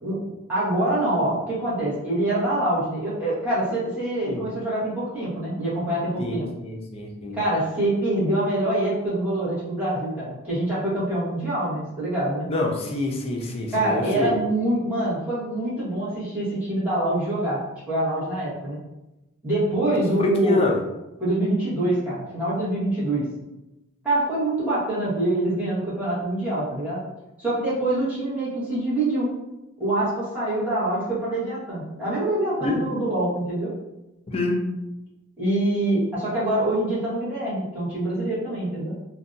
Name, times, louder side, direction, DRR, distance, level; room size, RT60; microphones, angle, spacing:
voice 1, 0.0-6.5 7.3-12.5 13.7-17.6 17.9-18.8 19.4-20.6 21.2-23.2 24.0-27.0 27.4-29.3 29.8-33.7 35.4-38.9, right 1 dB, 10° right, -11 dB, 1.0 m, -25 dB
voice 2, 6.2-7.4 12.5-14.4 19.9-20.8 32.6-32.8 34.3-34.5, left 2 dB, 30° left, -1 dB, 0.4 m, -27 dB
2.6 x 2.2 x 2.5 m, 0.98 s
head